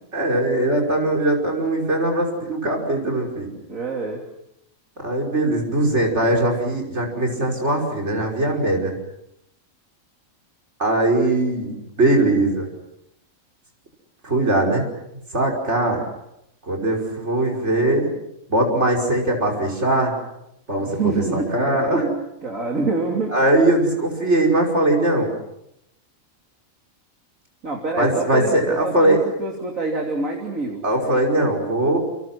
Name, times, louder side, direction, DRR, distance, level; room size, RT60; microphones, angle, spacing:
voice 1, 0.1-3.5 5.0-8.9 10.8-12.7 14.2-14.8 15.3-16.0 16.7-18.1 18.5-20.1 20.7-22.1 23.3-25.3 28.0-29.2 30.8-32.0, right 1 dB, 55° right, 0 dB, 5.8 m, -20 dB
voice 2, 3.7-4.2 20.8-21.9 22.4-23.3 27.6-30.8, right 3 dB, 75° right, 0 dB, 3.7 m, -26 dB
29.5 x 27.0 x 6.1 m, 0.82 s
omnidirectional pair, 1.4 m